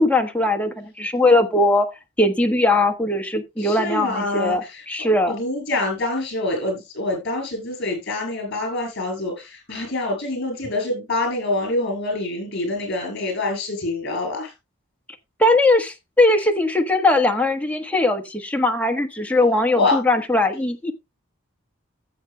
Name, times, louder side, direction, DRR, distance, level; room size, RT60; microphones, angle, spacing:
voice 1, 0.0-1.9 2.2-5.4 15.4-20.9, left 2 dB, 5° left, 1.2 m, -20 dB
voice 2, 3.6-4.8 5.3-14.5 19.7-20.0, left 2 dB, 50° left, 7.5 m, -26 dB
14.5 x 8.2 x 2.2 m
head